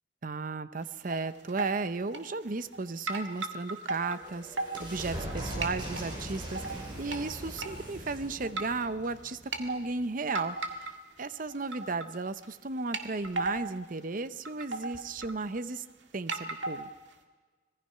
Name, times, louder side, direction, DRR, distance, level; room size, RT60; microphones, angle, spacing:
voice 1, 0.2-10.9 11.2-15.8 16.1-16.9, right 3 dB, 45° right, 13 dB, 0.7 m, -35 dB
sound 1, 0.8-1.2 1.5-1.7 2.1-2.8 3.1-5.4 5.6-6.0 6.5-7.2 7.6-7.7 8.4-8.9 9.3-9.6 10.3-11.2 11.5-12.2 12.4-12.5 12.9-13.7 14.2-14.3 14.5-15.8 16.3-17.1, right 3 dB, 75° right, 1.9 m, -36 dB
sound 2, 3.6-10.0, right 1 dB, 25° right, 6.2 m, -41 dB
25.5 x 20.0 x 5.7 m, 1.4 s
head